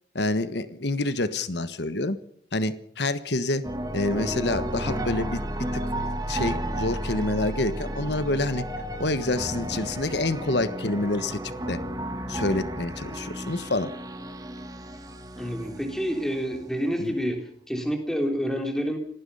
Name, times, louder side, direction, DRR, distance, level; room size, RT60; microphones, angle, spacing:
voice 1, 0.1-2.2 2.5-3.6 3.9-5.4 5.7-5.8 6.3-8.6 9.0-11.8 12.3-13.9 17.0-17.1, left 2 dB, 65° left, 12 dB, 1.3 m, -27 dB
sound 1, 3.6-17.0, right 1 dB, 20° right, 1.8 m, -33 dB
voice 2, 15.4-19.0, equal, ahead, 3 dB, 3.4 m, -28 dB
26.0 x 18.5 x 5.6 m, 0.67 s
head